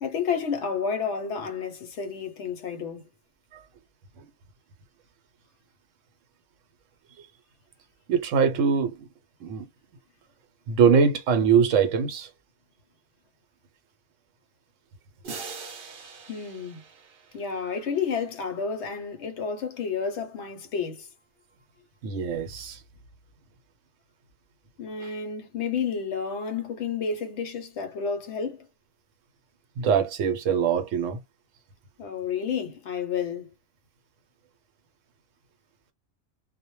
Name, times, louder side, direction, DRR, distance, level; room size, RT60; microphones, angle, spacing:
voice 1, 0.0-3.1 16.3-16.8 17.3-21.1 24.8-28.7 32.0-33.5, left 6 dB, 65° left, 0.9 m, -30 dB
voice 2, 8.1-9.0 9.4-9.7 10.7-12.3 22.0-22.8 25.0-25.1 29.8-31.2, right 6 dB, 75° right, 0.9 m, -23 dB
sound 1, 15.2-18.1, right 5 dB, 50° right, 0.7 m, -42 dB
2.1 x 2.1 x 2.9 m
omnidirectional pair, 1.3 m